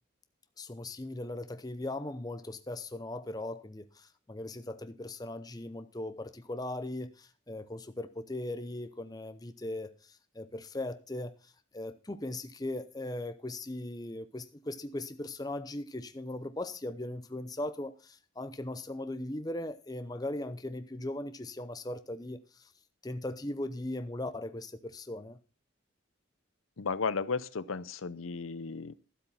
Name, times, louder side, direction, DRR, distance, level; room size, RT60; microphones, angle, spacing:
voice 1, 0.6-22.7 23.0-25.4, left 1 dB, 20° left, 0.7 m, -39 dB
voice 2, 26.8-28.9, left 5 dB, 85° left, 0.7 m, -34 dB
12.5 x 8.0 x 5.7 m
head